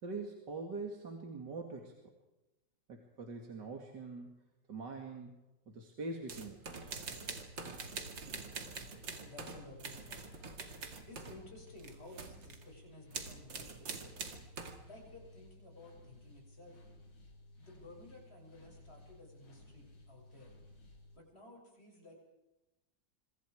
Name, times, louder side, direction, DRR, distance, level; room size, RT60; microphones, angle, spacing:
voice 1, 0.0-1.9 2.9-4.4 4.7-5.4 5.7-7.0, right 3 dB, 70° right, 2 dB, 3.0 m, -43 dB
sound 1, 6.3-11.4 11.7-12.6 13.1-14.8, right 4 dB, 85° right, 3.0 m, -45 dB
sound 2, 6.6-21.2, left 1 dB, 75° left, 5.5 m, -58 dB
voice 2, 9.2-10.2 10.7-14.4 14.9-16.8 17.6-20.5 21.1-22.1, left 2 dB, 35° left, 0 dB, 7.5 m, -55 dB
26.5 x 25.0 x 4.9 m, 0.96 s
omnidirectional pair, 2.0 m